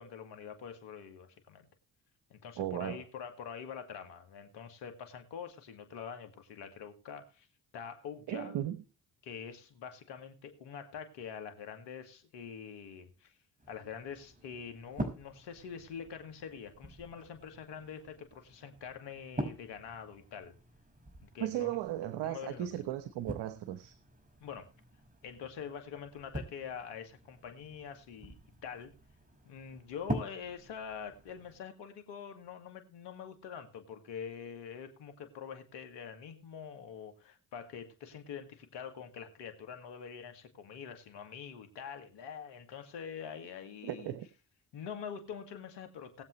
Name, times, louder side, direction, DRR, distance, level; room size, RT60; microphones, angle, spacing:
voice 1, 0.0-1.7 2.3-7.5 7.7-8.5 9.2-13.3 13.7-20.5 21.2-21.7 22.2-22.7 24.4-24.7 25.2-28.4 28.6-28.9 29.4-44.1 44.7-46.2, left 7 dB, 80° left, 2.3 m, -45 dB
voice 2, 2.6-3.0 8.3-8.8 21.4-24.0 43.8-44.3, right 12 dB, 75° right, 1.1 m, -36 dB
sound 1, 13.6-31.6, right 1 dB, 20° right, 5.5 m, -45 dB
20.5 x 7.7 x 3.2 m
hypercardioid pair, 50°, 41 cm